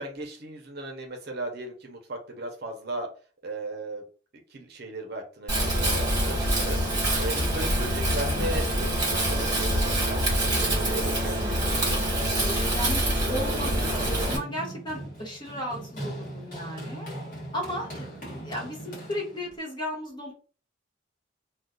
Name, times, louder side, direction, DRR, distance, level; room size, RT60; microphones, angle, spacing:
voice 1, 0.0-3.1 3.4-4.0 4.5-6.8 7.1-12.1 18.1-18.2, right 2 dB, 55° right, 3 dB, 0.7 m, -37 dB
Wind, 5.5-14.4, right 1 dB, 20° right, 1.3 m, -25 dB
voice 2, 11.4-12.0 12.3-17.1 17.5-20.3, equal, 25° left, -2 dB, 1.2 m, -35 dB
Run, 13.8-19.6, right 1 dB, 45° left, 1.2 m, -40 dB
2.4 x 2.3 x 3.7 m, 0.38 s
head